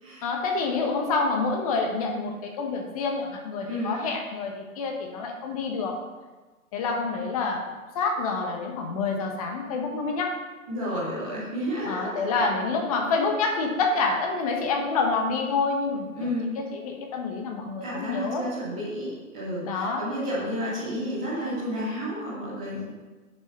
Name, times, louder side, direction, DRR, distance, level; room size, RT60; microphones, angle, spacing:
voice 1, 0.2-6.0 6.7-7.7 7.9-10.4 11.8-18.5 19.6-20.1 22.7-22.8, left 4 dB, 25° left, 2 dB, 1.2 m, -27 dB
voice 2, 3.6-4.0 10.7-12.5 16.1-16.5 17.8-22.8, equal, 5° right, -9 dB, 0.5 m, -31 dB
8.6 x 6.9 x 5.5 m, 1.3 s
figure-of-eight pair, 140°, 44 cm